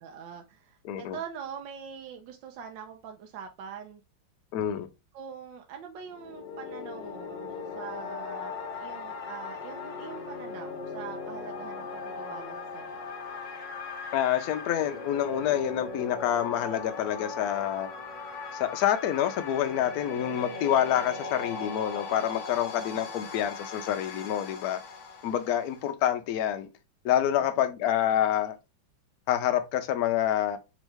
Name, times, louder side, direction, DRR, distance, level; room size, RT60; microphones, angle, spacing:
voice 1, 0.0-4.0 5.1-13.1 22.9-23.4 27.4-27.6, right 7 dB, 75° right, 1.2 m, -43 dB
voice 2, 0.8-1.2 4.5-4.9 14.1-17.9 18.5-24.8 25.2-26.7 27.0-28.6 29.3-30.6, left 10 dB, 90° left, 0.8 m, -27 dB
sound 1, 6.0-25.9, left 4 dB, 55° left, 0.9 m, -39 dB
3.6 x 3.1 x 3.2 m
omnidirectional pair, 2.2 m